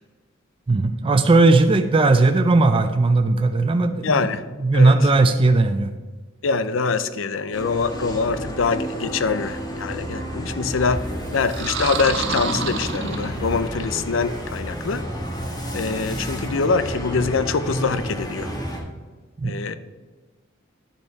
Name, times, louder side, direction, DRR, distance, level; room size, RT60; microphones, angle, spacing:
voice 1, 0.7-4.3 4.6-5.9 19.4-19.6, right 3 dB, 25° right, 7 dB, 0.4 m, -17 dB
voice 2, 4.0-4.5 4.7-4.9 6.4-11.0 11.3-15.1 15.7-18.5 19.4-19.8, left 4 dB, 70° left, 13 dB, 0.5 m, -24 dB
sound 1, 7.5-18.8, equal, 20° left, 1.4 m, -31 dB
sound 2, 11.4-13.8, right 5 dB, 65° right, 0.8 m, -28 dB
10.5 x 5.2 x 4.6 m, 1.3 s
head